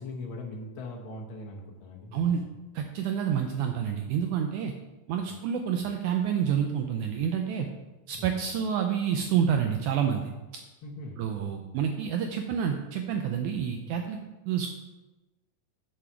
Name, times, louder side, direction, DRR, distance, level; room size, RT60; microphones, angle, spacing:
voice 1, 0.0-2.3 10.8-11.2, left 2 dB, 90° left, -1 dB, 1.1 m, -40 dB
voice 2, 2.7-4.7 5.1-7.7 8.1-10.3 11.2-14.2 14.5-14.7, right 8 dB, 80° right, 4 dB, 1.8 m, -28 dB
8.5 x 7.1 x 4.5 m, 1.1 s
omnidirectional pair, 3.9 m